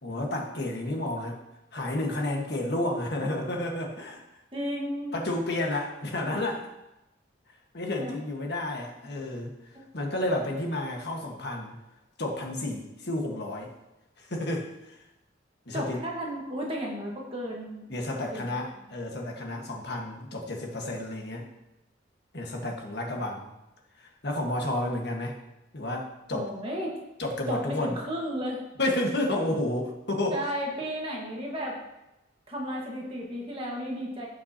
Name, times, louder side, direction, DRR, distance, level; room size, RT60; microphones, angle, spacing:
voice 1, 0.0-1.4 1.7-4.2 5.1-6.7 7.7-9.6 9.9-11.8 12.2-13.7 14.2-15.0 15.7-16.0 17.9-21.5 22.3-23.5 24.0-25.4 25.7-26.5 27.2-28.0 28.8-30.4, left 1 dB, 55° left, 1 dB, 1.5 m, -31 dB
voice 2, 4.5-5.1 8.0-8.1 15.7-17.9 18.3-18.4 26.3-27.0 27.5-28.6 30.3-31.8 32.5-34.3, equal, 30° right, -2 dB, 1.5 m, -33 dB
16.5 x 5.8 x 2.9 m, 0.95 s
head